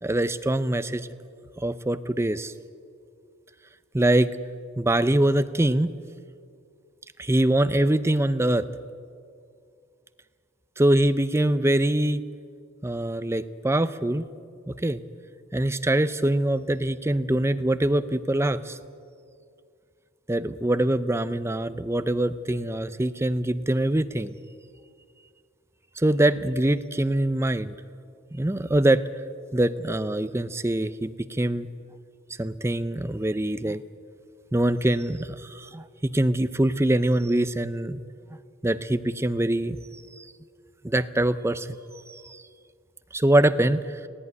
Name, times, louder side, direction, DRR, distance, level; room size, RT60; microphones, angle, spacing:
voice 1, 0.0-1.1 1.6-2.5 3.9-4.3 4.8-5.9 7.2-8.6 10.8-12.2 12.8-14.3 14.7-15.0 15.5-18.8 20.3-24.3 26.0-27.7 28.3-29.1 29.5-31.7 32.4-33.8 34.5-38.0 38.6-39.8 40.2-40.3 40.8-41.7 42.1-42.4 43.1-44.0, right 1 dB, 10° right, 13 dB, 0.5 m, -24 dB
18.5 x 16.5 x 9.7 m, 2.3 s
head